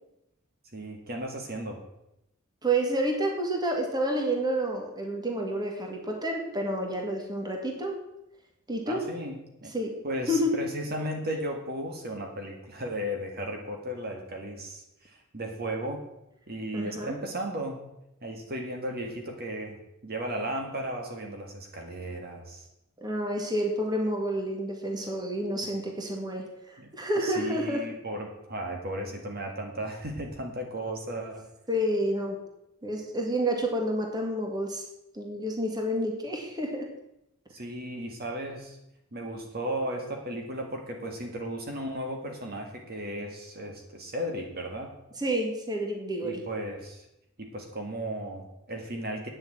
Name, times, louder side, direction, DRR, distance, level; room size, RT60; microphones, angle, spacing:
voice 1, 0.7-1.8 8.9-9.7 10.0-16.0 16.5-17.9 18.2-22.7 26.8-26.9 27.2-31.5 37.5-38.8 39.1-44.9 46.2-47.1 47.4-49.3, right 1 dB, 45° right, 2 dB, 1.8 m, -35 dB
voice 2, 2.6-7.9 8.7-9.0 9.7-10.0 10.3-10.5 16.7-17.2 23.0-27.9 31.7-32.4 32.8-34.8 35.1-36.9 45.2-46.4, right 1 dB, 20° right, 1 dB, 1.9 m, -29 dB
9.0 x 7.0 x 8.8 m, 0.85 s
head